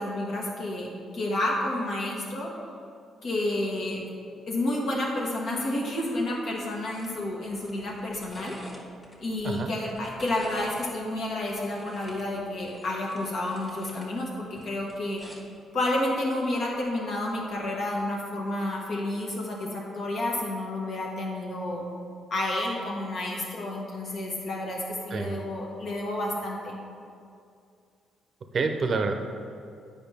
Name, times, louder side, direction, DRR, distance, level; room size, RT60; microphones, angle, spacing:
voice 1, 0.0-2.5 3.2-4.0 4.5-8.6 9.2-15.2 15.7-21.9 22.3-26.8, left 1 dB, 60° left, -2 dB, 1.5 m, -30 dB
sound 1, 6.9-7.1 7.5-9.2 9.8-10.9 11.3-14.1 14.4-15.6 16.7-16.9, equal, 15° left, 1.3 m, -48 dB
voice 2, 25.1-25.4 28.5-29.1, right 4 dB, 50° right, 5 dB, 0.6 m, -27 dB
9.0 x 5.1 x 3.4 m, 2.4 s
cardioid pair, 90°, 0 cm